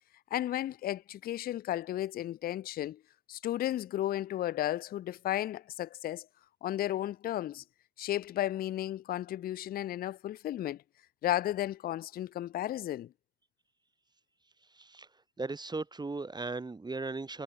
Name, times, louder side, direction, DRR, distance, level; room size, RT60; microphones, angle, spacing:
voice 1, 0.3-3.0 3.3-6.3 6.6-7.6 8.0-10.8 11.2-13.1, left 13 dB, 30° left, 0.4 m, -34 dB
voice 2, 14.8-15.1 15.4-17.4, right 3 dB, 10° right, 1.4 m, -37 dB
cardioid pair, 125°, 34 cm